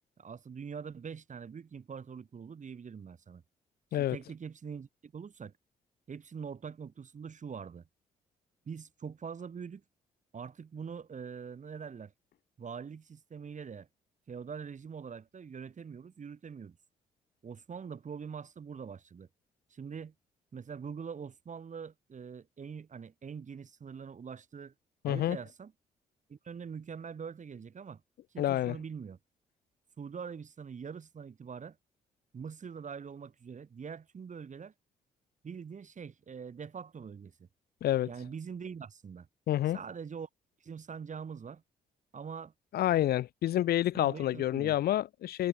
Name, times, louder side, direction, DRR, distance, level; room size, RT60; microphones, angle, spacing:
voice 1, 0.2-3.4 3.9-5.5 6.1-7.8 8.7-9.8 10.3-12.1 12.6-13.9 14.3-16.8 17.4-19.3 19.7-20.1 20.5-24.7 25.1-25.7 26.3-28.0 28.3-29.2 30.0-31.8 32.3-34.7 35.4-37.3 38.1-39.3 39.7-40.3 40.6-41.6 42.1-42.5 43.9-44.8, right 6 dB, 50° right, 3.9 m, -43 dB
voice 2, 25.0-25.4 28.4-28.8 37.8-38.1 39.5-39.8 42.7-45.5, left 13 dB, 70° left, 1.0 m, -28 dB
supercardioid pair, 60°, 17 cm